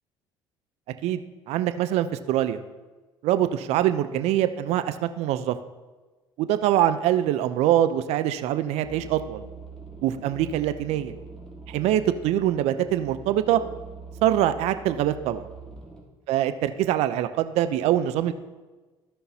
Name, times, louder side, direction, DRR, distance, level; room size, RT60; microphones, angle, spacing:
voice 1, 1.5-2.6 3.2-5.6 6.4-9.4 10.0-11.1 11.7-13.6 14.2-15.5 16.3-18.3, right 12 dB, 70° right, 11 dB, 0.6 m, -24 dB
sound 1, 8.8-16.0, right 4 dB, 5° left, 2.8 m, -43 dB
15.5 x 5.6 x 2.8 m, 1.3 s
hypercardioid pair, 65°, 11 cm